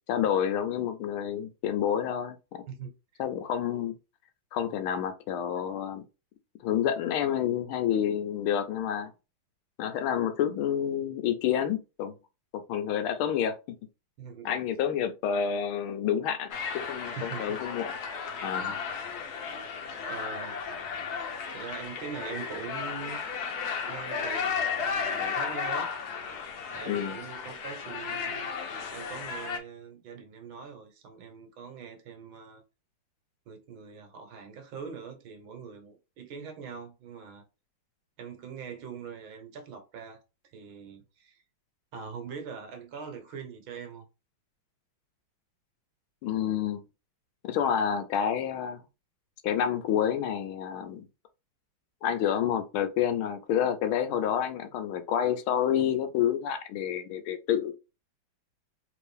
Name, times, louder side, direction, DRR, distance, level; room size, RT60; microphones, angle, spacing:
voice 1, 0.1-2.6 3.2-3.9 4.5-6.0 6.6-9.1 9.8-12.1 12.5-13.5 14.4-17.9 18.4-18.7 26.9-27.2 46.2-46.8 47.4-48.8 49.4-51.1 52.0-57.7, left 9 dB, 85° left, 1.5 m, -29 dB
voice 2, 2.7-3.2 14.2-14.6 17.0-17.6 17.9-18.0 18.5-18.8 19.4-20.6 21.5-23.2 23.9-25.9 26.7-28.5 28.9-32.6 33.5-37.4 38.2-40.2 40.4-41.4 41.9-44.1, right 6 dB, 75° right, 1.8 m, -43 dB
sound 1, 16.5-29.6, left 6 dB, 60° left, 1.1 m, -34 dB
3.6 x 3.3 x 3.3 m
omnidirectional pair, 2.3 m